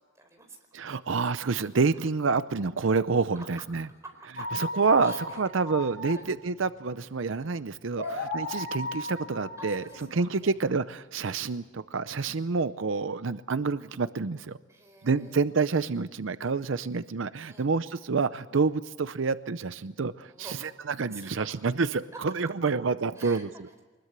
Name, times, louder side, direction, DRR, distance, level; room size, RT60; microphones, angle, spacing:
voice 1, 0.0-0.8 3.3-3.5 4.0-4.5 5.0-5.4 5.8-6.3 8.0-8.3 9.6-10.5 14.7-15.4 17.5-17.7 20.3-20.7 21.1-21.5 22.1-22.2 23.2-23.5, right 2 dB, 15° right, 3 dB, 4.6 m, -48 dB
voice 2, 0.7-3.9 4.5-14.6 15.0-23.8, right 4 dB, 80° right, 13 dB, 0.6 m, -28 dB
sound 1, 4.4-10.9, left 2 dB, 60° left, 6.8 m, -36 dB
23.5 x 21.0 x 8.1 m, 1.2 s
head